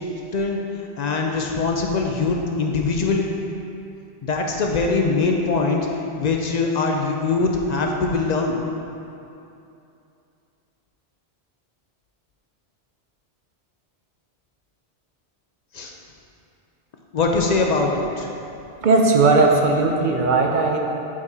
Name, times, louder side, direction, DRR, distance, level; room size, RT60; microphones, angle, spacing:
voice 1, 1.0-3.3 4.2-5.9 6.2-8.6 15.7-15.9 17.1-18.3, left 3 dB, 55° left, 1 dB, 0.5 m, -22 dB
voice 2, 18.8-20.8, right 3 dB, 55° right, 1 dB, 0.6 m, -17 dB
8.4 x 4.6 x 2.7 m, 2.7 s
omnidirectional pair, 1.1 m